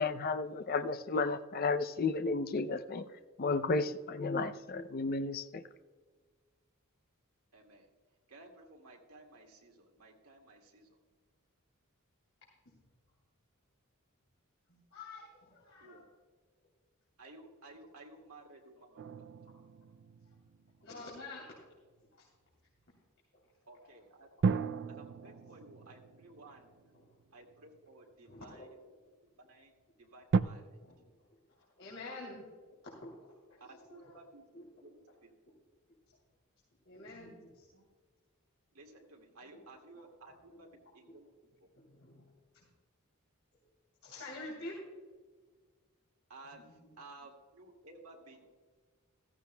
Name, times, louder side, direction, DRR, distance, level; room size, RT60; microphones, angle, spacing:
voice 1, 0.0-3.0 3.4-5.6, left 3 dB, 45° left, 10 dB, 0.5 m, -33 dB
voice 2, 7.5-7.9 8.3-11.0 15.8-16.0 17.2-19.3 23.7-26.7 27.3-28.7 29.5-30.8 33.6-35.3 38.7-40.7 40.9-41.3 41.6-41.7 46.3-46.7 47.0-48.5, right 2 dB, 90° right, 1 dB, 2.1 m, -55 dB
voice 3, 14.7-16.1 19.4-19.5 20.3-20.4 20.8-21.7 22.1-22.3 23.3-23.4 25.2-25.3 26.9-27.0 28.3-28.7 30.8-30.9 31.5-32.4 32.8-33.1 33.5-34.2 34.5-34.6 35.5-35.6 36.8-37.8 39.4-39.6 40.5-40.6 41.7-42.2 42.5-42.7 43.6-43.7 44.0-44.8 46.5-46.7, left 2 dB, 60° left, -5 dB, 3.1 m, -48 dB
sound 1, 19.0-21.5 24.4-27.8 28.5-28.6 30.3-30.4, right 5 dB, 50° right, 0.4 m, -36 dB
15.0 x 15.0 x 2.2 m, 1.5 s
head